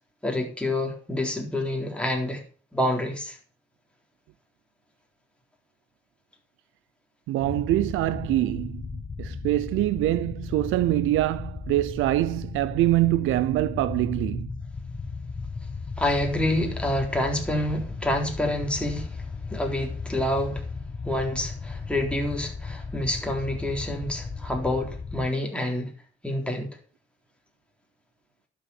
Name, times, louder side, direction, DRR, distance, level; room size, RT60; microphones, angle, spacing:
voice 1, 0.2-2.4 2.7-3.4 16.0-19.2 19.5-20.6 21.0-25.9 26.2-26.7, left 1 dB, 5° left, 3.8 m, -27 dB
voice 2, 7.3-8.8 9.2-14.5, right 16 dB, 90° right, 0.5 m, -24 dB
sound 1, 7.4-25.3, left 4 dB, 25° left, 1.2 m, -35 dB
11.5 x 7.2 x 7.1 m
cardioid pair, 90°, 20 cm